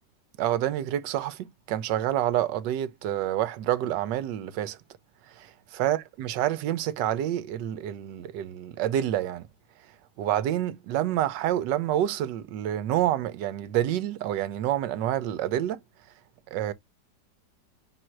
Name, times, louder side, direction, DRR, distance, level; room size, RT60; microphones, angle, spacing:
voice 1, 0.4-4.8 5.4-9.4 10.2-15.8 16.5-16.7, right 12 dB, 80° right, 1.2 m, -28 dB
3.8 x 2.6 x 4.4 m
omnidirectional pair, 2.0 m